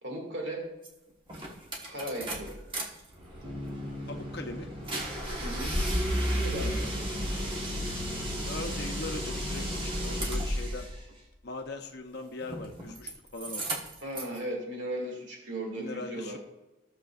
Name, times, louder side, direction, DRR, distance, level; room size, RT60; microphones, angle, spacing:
voice 1, 0.0-0.7 1.9-2.6 5.4-5.7 6.2-6.9 14.0-16.4, right 1 dB, 85° right, 1 dB, 2.2 m, -36 dB
sound 1, 0.9-1.0 1.3-2.8 3.2-10.9 12.4-13.1 13.4-14.4, equal, 30° right, 1.4 m, -33 dB
Bass guitar, 3.4-7.1, equal, 65° right, 2.5 m, -43 dB
voice 2, 4.1-4.7 8.4-10.9 11.4-13.8 15.8-16.4, left 2 dB, 60° left, 4 dB, 0.7 m, -40 dB
15.5 x 6.8 x 2.4 m, 1.0 s
head